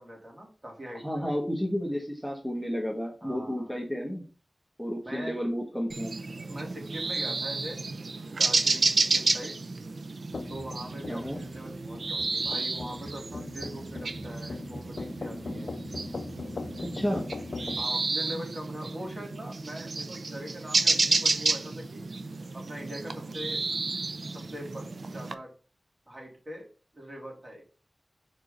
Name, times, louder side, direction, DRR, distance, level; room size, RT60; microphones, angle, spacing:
voice 1, 0.0-1.3 3.2-3.7 5.0-5.4 6.5-7.9 8.3-9.6 10.5-15.7 17.8-22.0 22.5-23.6 24.3-25.5 26.1-26.7 26.9-27.6, equal, 35° right, -1 dB, 3.0 m, -42 dB
voice 2, 1.0-4.2 4.8-6.1 11.1-11.4 16.8-17.2, equal, ahead, -1 dB, 1.4 m, -31 dB
sound 1, 5.9-25.3, right 3 dB, 80° right, 0.6 m, -31 dB
sound 2, 10.3-17.8, left 3 dB, 80° left, 0.5 m, -40 dB
4.8 x 4.5 x 5.1 m, 0.36 s
wide cardioid pair, 70°, 0 cm